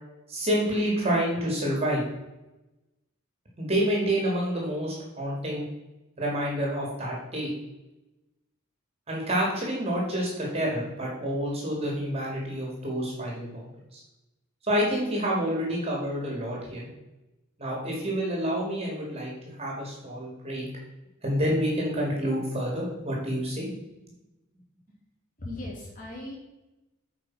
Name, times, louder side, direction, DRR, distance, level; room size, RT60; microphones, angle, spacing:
voice 1, 0.3-2.0 3.6-5.6 6.2-7.5 9.1-14.0 14.6-16.9 17.6-19.3 19.6-20.7 21.2-23.7, equal, 30° right, -2 dB, 2.2 m, -28 dB
voice 2, 25.4-26.3, left 1 dB, 40° left, -4 dB, 2.1 m, -37 dB
8.4 x 5.1 x 4.7 m, 0.99 s
head